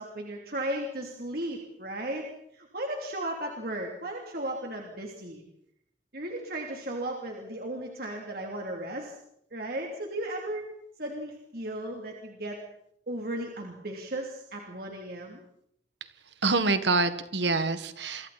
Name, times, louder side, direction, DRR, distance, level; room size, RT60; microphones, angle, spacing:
voice 1, 0.0-2.3 2.5-5.4 6.1-9.1 9.5-10.7 11.0-12.6 13.1-15.4, right 1 dB, 55° right, 0 dB, 3.1 m, -35 dB
voice 2, 16.4-18.3, right 3 dB, 75° right, 10 dB, 1.7 m, -26 dB
28.0 x 24.5 x 4.3 m, 0.73 s
head